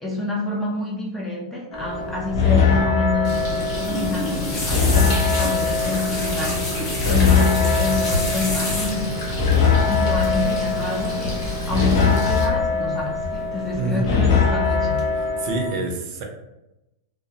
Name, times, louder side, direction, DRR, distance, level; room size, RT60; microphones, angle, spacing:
voice 1, 0.0-6.7 7.1-9.1 9.9-15.1, left 3 dB, 10° left, -3 dB, 0.4 m, -27 dB
sound 1, 1.7-15.7, left 5 dB, 65° left, 0.6 m, -22 dB
Bird, 3.2-12.4, left 1 dB, 80° left, 1.0 m, -30 dB
sound 2, 3.7-9.2 10.2-10.5 10.8-11.1 12.3-12.9 13.2-13.8 14.2-14.6 15.0-15.1, left 1 dB, 35° left, 0.9 m, -30 dB
voice 2, 13.7-14.2 14.6-14.7 15.1-16.2, right 2 dB, 45° right, 2 dB, 0.5 m, -27 dB
2.2 x 2.1 x 2.7 m, 0.93 s
supercardioid pair, 145°, 2 cm